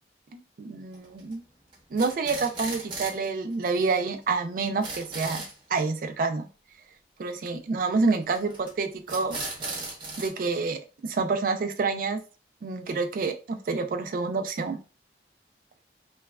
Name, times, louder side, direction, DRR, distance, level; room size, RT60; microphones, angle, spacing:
voice 1, 0.3-1.4 1.9-5.4 5.7-6.5 7.2-9.4 10.2-12.2 12.6-14.8, right 4 dB, 50° right, 7 dB, 0.3 m, -28 dB
sound 1, 0.9-1.3 1.7-3.3 3.5-3.6 3.8-3.9 4.2-4.3 4.6-5.5 8.3-8.7 9.1-10.3, right 3 dB, 25° right, 0.7 m, -36 dB
3.1 x 2.2 x 2.3 m, 0.35 s
head